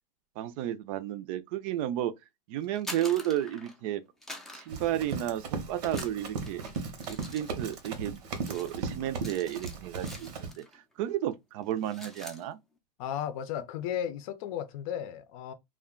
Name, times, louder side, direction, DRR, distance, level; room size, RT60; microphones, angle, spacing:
voice 1, 0.4-2.1 2.5-4.0 4.5-6.6 7.1-10.6 11.0-12.6, right 12 dB, 55° right, 0.4 m, -32 dB
sound 1, 2.6-3.9 4.2-5.5 5.8-10.8 11.1-11.3 11.6-12.4, left 1 dB, ahead, 0.4 m, -46 dB
Run, 4.7-10.5, right 4 dB, 90° right, 0.8 m, -37 dB
voice 2, 13.0-15.5, left 10 dB, 60° left, 0.5 m, -34 dB
2.3 x 2.2 x 3.6 m
supercardioid pair, 135°, 20 cm